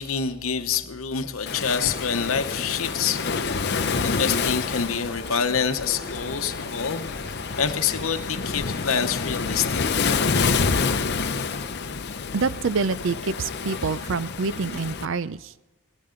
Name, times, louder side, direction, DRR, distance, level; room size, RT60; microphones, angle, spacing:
voice 1, 0.0-3.6 4.0-10.1, left 6 dB, 80° left, 8 dB, 0.9 m, -27 dB
Truck, 1.4-10.5, right 3 dB, 45° right, 0.9 m, -47 dB
Waves surf, 1.5-15.1, left 5 dB, 50° left, 0.7 m, -28 dB
voice 2, 12.3-15.5, right 4 dB, 60° right, 16 dB, 0.5 m, -26 dB
17.5 x 17.5 x 3.8 m, 1.1 s
head